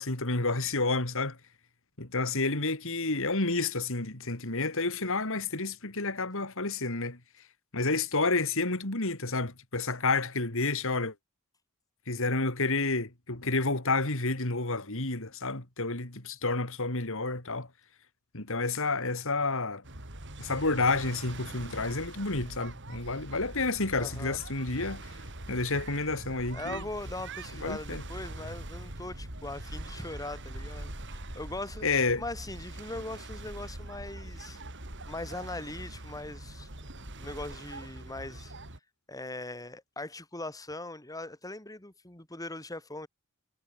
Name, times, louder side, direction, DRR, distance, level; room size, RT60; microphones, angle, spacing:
voice 1, 0.0-1.4 2.0-7.2 7.7-11.1 12.1-17.7 18.3-19.8 20.4-25.1 25.5-26.8 27.6-28.0 31.8-32.2, left 3 dB, 65° left, 3.7 m, -30 dB
sound 1, 19.8-38.8, right 2 dB, 55° right, 5.1 m, -43 dB
voice 2, 23.9-24.4 26.5-31.8 32.2-34.6 35.1-36.7 37.0-38.6 39.1-43.1, left 2 dB, 15° left, 3.4 m, -40 dB
head